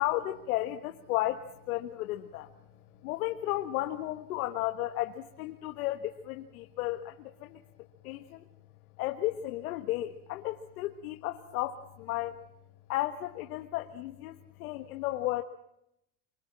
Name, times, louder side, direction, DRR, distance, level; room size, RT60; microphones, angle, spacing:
voice 1, 0.0-2.5 3.0-7.6 8.0-8.5 9.0-12.4 12.9-15.4, left 15 dB, 90° left, 5 dB, 1.6 m, -33 dB
24.5 x 24.0 x 7.5 m, 0.81 s
supercardioid pair, 180°, 42 cm